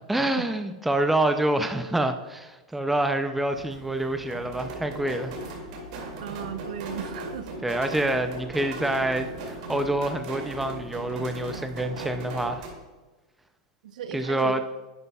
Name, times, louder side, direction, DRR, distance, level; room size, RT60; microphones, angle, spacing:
voice 1, 0.1-5.3 7.6-12.6 14.1-14.6, right 1 dB, 5° right, 7 dB, 0.4 m, -27 dB
sound 1, 3.5-12.7, right 2 dB, 60° right, 2.3 m, -37 dB
voice 2, 6.2-7.6 13.8-14.6, right 8 dB, 80° right, 9 dB, 0.7 m, -36 dB
10.5 x 8.2 x 2.3 m, 1.2 s
supercardioid pair, 145°, 4 cm